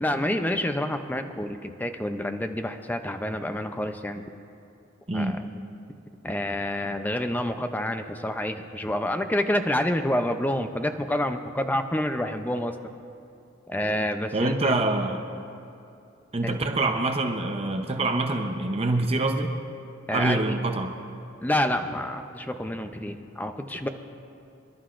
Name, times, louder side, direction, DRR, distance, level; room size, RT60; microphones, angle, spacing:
voice 1, 0.0-4.2 5.1-5.4 6.2-12.7 13.7-14.7 16.4-16.5 20.1-20.5 21.4-23.9, left 1 dB, 10° left, 7 dB, 0.5 m, -28 dB
voice 2, 14.3-15.2 16.3-19.5 20.1-20.9, right 2 dB, 30° right, 4 dB, 0.7 m, -25 dB
27.5 x 11.5 x 2.5 m, 2.7 s
head